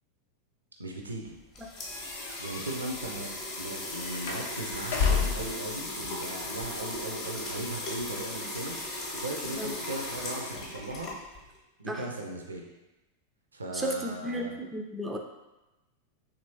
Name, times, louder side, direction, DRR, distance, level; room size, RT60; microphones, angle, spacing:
voice 1, 0.8-1.3 2.4-3.3 3.6-8.8 9.1-11.1 11.8-12.7 13.5-14.6, right 2 dB, 75° right, 1 dB, 0.4 m, -37 dB
sound 1, 1.3-11.6, left 2 dB, 30° left, 0.8 m, -37 dB
sound 2, 1.8-5.6, left 5 dB, 55° left, 0.4 m, -32 dB
voice 2, 13.7-15.2, right 1 dB, 10° right, 1 dB, 0.3 m, -33 dB
2.9 x 2.5 x 2.9 m, 1.0 s
figure-of-eight pair, 90°, 0 cm